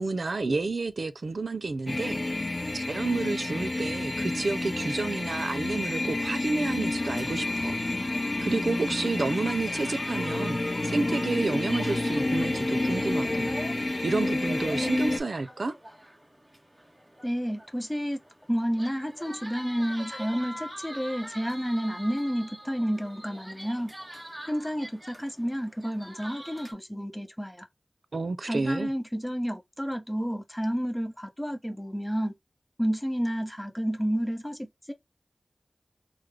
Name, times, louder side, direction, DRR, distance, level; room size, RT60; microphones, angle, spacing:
voice 1, 0.0-2.2 2.7-7.8 8.4-13.5 13.8-15.7 28.1-28.9, right 3 dB, 85° right, 0.4 m, -30 dB
sound 1, 1.9-15.2, left 2 dB, 55° left, 0.7 m, -29 dB
sound 2, 6.8-26.7, equal, 20° right, 1.1 m, -45 dB
voice 2, 17.2-18.2 18.5-23.9 24.5-27.7 28.5-32.3 32.8-34.9, equal, 10° left, 0.7 m, -30 dB
3.1 x 2.0 x 3.6 m
wide cardioid pair, 50°, 0 cm